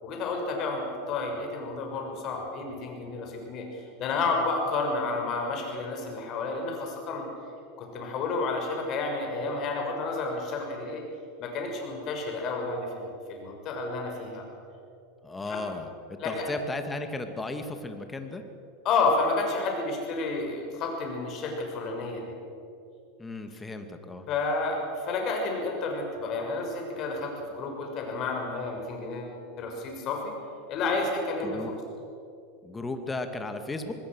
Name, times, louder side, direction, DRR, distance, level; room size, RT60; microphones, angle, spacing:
voice 1, 0.0-7.2 7.8-11.0 11.4-14.4 15.5-15.6 16.2-16.5 18.8-22.4 24.3-30.3 30.7-31.7, left 3 dB, 45° left, 2 dB, 6.5 m, -31 dB
voice 2, 15.2-18.4 23.2-24.3 31.4-31.7 32.6-33.9, left 2 dB, 15° left, 7 dB, 2.5 m, -35 dB
25.5 x 20.0 x 6.5 m, 2.7 s
hypercardioid pair, 85°, 0 cm